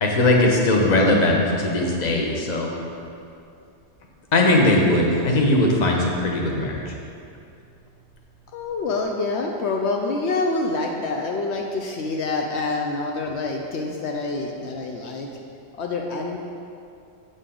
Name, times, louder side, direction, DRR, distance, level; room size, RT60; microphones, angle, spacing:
voice 1, 0.0-2.7 4.3-6.9, left 1 dB, 40° left, 0 dB, 1.0 m, -19 dB
voice 2, 8.5-15.3 15.8-16.4, left 3 dB, 75° left, 1 dB, 0.9 m, -26 dB
7.8 x 6.5 x 3.8 m, 2.5 s
omnidirectional pair, 1.2 m